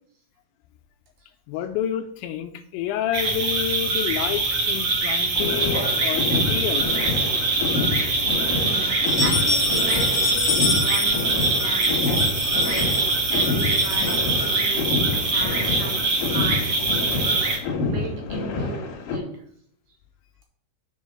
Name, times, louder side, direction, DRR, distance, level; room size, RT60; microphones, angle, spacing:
voice 1, 1.5-7.0, left 11 dB, 80° left, 7 dB, 2.7 m, -29 dB
sound 1, 3.1-17.6, right 3 dB, 45° right, 2.2 m, -23 dB
sound 2, 5.3-19.2, left 3 dB, 65° left, 2.2 m, -28 dB
sound 3, 6.4-7.3 7.7-7.8 8.2-8.3 8.9-15.1, left 4 dB, 35° left, 1.0 m, -30 dB
voice 2, 8.5-12.9 13.3-17.4 17.9-18.8 19.1-19.4, right 4 dB, 75° right, 2 dB, 2.4 m, -36 dB
7.1 x 4.6 x 6.3 m, 0.68 s
omnidirectional pair, 5.4 m